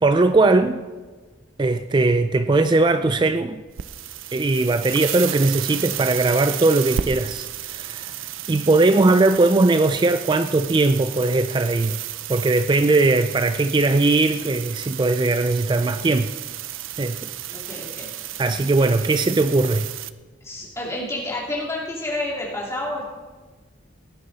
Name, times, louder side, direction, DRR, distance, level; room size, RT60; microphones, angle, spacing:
voice 1, 0.0-0.8 1.6-3.6 4.3-12.0 12.3-16.3 17.0-17.2 18.4-19.9, right 3 dB, 25° right, 10 dB, 0.3 m, -19 dB
sound 1, 3.7-20.1, right 11 dB, 85° right, 0.5 m, -33 dB
voice 2, 17.5-18.1 20.4-23.0, left 1 dB, 15° left, -4 dB, 2.6 m, -29 dB
17.5 x 9.8 x 4.0 m, 1.3 s
head